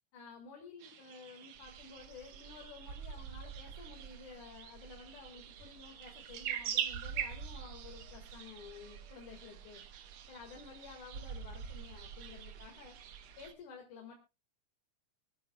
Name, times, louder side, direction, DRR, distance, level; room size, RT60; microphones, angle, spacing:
voice 1, 0.1-9.8 10.3-13.0 13.4-14.1, left 5 dB, 75° left, 2 dB, 3.4 m, -52 dB
sound 1, 0.8-13.5, right 9 dB, 65° right, 2.0 m, -45 dB
sound 2, 1.6-13.5, right 6 dB, 85° right, 1.2 m, -50 dB
26.0 x 9.2 x 2.3 m, 0.29 s
omnidirectional pair, 3.5 m